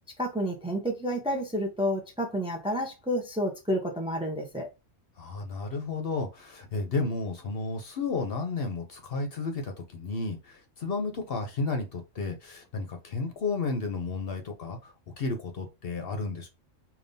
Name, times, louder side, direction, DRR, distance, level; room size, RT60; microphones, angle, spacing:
voice 1, 0.2-4.7, equal, 5° right, 0.7 m, -30 dB
voice 2, 5.2-16.5, left 3 dB, 55° left, 0.9 m, -32 dB
5.2 x 2.7 x 2.7 m
omnidirectional pair, 1.3 m